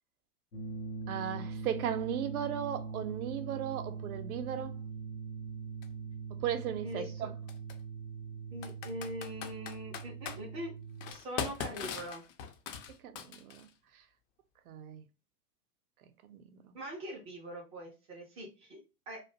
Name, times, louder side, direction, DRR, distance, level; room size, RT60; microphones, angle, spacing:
sound 1, 0.5-11.1, right 5 dB, 90° left, 0.8 m, -42 dB
voice 1, 1.1-4.7 6.4-7.3 13.0-13.7 14.7-15.0 16.3-16.7, right 9 dB, 70° right, 0.6 m, -36 dB
Computer keyboard, 5.8-5.9 7.5-7.7 8.6-10.4 11.0-13.7, left 8 dB, 55° left, 0.5 m, -40 dB
voice 2, 6.8-7.3 8.5-10.7 11.1-12.2 16.7-19.2, equal, 15° right, 0.4 m, -42 dB
2.5 x 2.2 x 2.6 m
hypercardioid pair, 105°, 46 cm